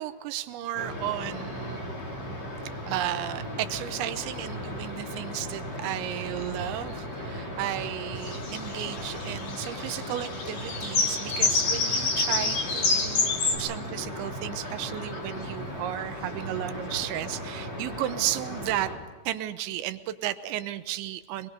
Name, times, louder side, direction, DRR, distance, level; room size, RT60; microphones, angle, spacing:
voice 1, 0.0-1.8 2.9-18.9 19.3-21.5, right 13 dB, 80° right, 11 dB, 2.9 m, -33 dB
sound 1, 0.7-19.0, equal, 30° left, 3.0 m, -37 dB
sound 2, 8.2-13.6, left 4 dB, 50° left, 2.0 m, -27 dB
24.5 x 21.0 x 5.3 m, 1.4 s
omnidirectional pair, 5.5 m